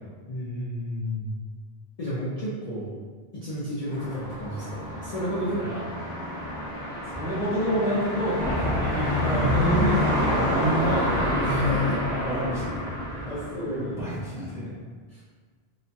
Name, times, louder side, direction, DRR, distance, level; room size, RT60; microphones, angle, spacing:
voice 1, 0.3-1.3 2.0-2.9 3.3-5.8 11.4-12.0 13.3-14.2 15.1-15.2, equal, 50° left, -8 dB, 0.5 m, -32 dB
sound 1, 3.9-14.1, equal, 20° left, 1.1 m, -29 dB
voice 2, 7.1-11.0 11.9-12.9 13.6-14.7, equal, 5° right, -8 dB, 0.5 m, -28 dB
sound 2, 8.4-13.6, left 2 dB, 25° right, 0.9 m, -29 dB
2.9 x 2.2 x 2.6 m, 1.5 s
omnidirectional pair, 1.1 m